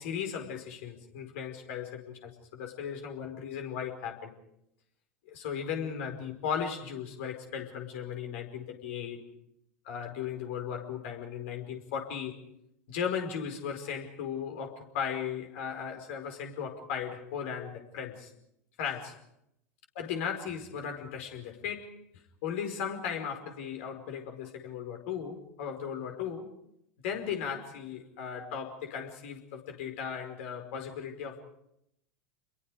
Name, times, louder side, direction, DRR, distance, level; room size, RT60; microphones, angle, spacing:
voice 1, 0.0-4.3 5.3-9.2 9.8-12.4 12.9-18.3 18.8-19.2 20.0-22.0 22.4-26.5 27.0-31.4, left 7 dB, 55° left, 4 dB, 5.1 m, -36 dB
29.5 x 22.5 x 5.0 m, 0.77 s
figure-of-eight pair, 85°, 8 cm